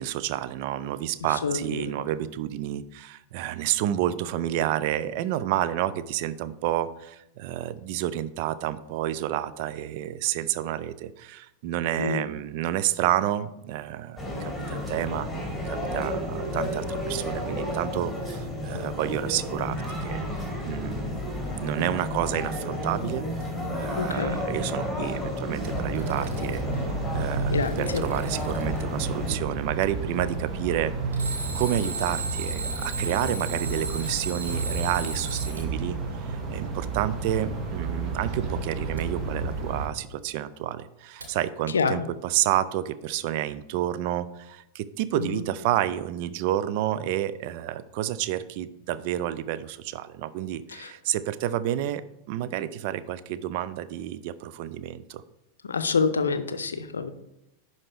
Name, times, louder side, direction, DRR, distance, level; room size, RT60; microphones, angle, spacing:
voice 1, 0.0-15.3 15.7-20.2 20.7-23.2 23.8-30.9 31.2-55.2, right 12 dB, 45° right, 15 dB, 0.4 m, -30 dB
voice 2, 1.4-2.0 12.0-12.2 24.0-24.4 27.5-28.0 41.7-42.1 45.1-45.4 50.7-50.9 55.6-57.1, left 5 dB, 70° left, 10 dB, 0.6 m, -27 dB
sound 1, 14.2-29.3, left 1 dB, ahead, 2.6 m, -32 dB
sound 2, 25.5-39.9, right 4 dB, 30° right, 1.1 m, -32 dB
Alarm, 25.8-26.8 27.4-28.8 31.1-35.7 39.0-39.1 41.2-41.3, right 3 dB, 70° right, 1.3 m, -35 dB
10.5 x 4.1 x 3.4 m, 0.87 s
figure-of-eight pair, 90°, 0 cm